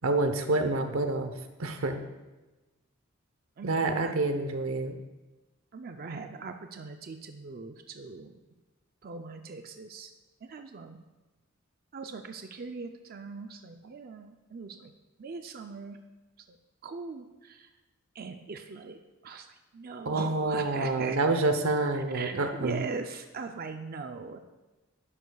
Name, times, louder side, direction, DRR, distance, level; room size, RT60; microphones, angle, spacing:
voice 1, 0.0-1.3 1.6-2.0 3.6-5.0 20.1-22.8, right 2 dB, 85° right, 7 dB, 0.8 m, -28 dB
voice 2, 3.6-4.1 5.7-8.4 9.0-10.1 10.4-11.0 11.9-14.9 15.2-16.0 16.5-16.6 16.8-17.7 18.1-19.0 19.2-19.5 19.7-21.2 22.1-22.3 22.6-24.4, right 4 dB, 45° right, 6 dB, 0.5 m, -40 dB
11.0 x 10.5 x 2.3 m, 1.1 s
head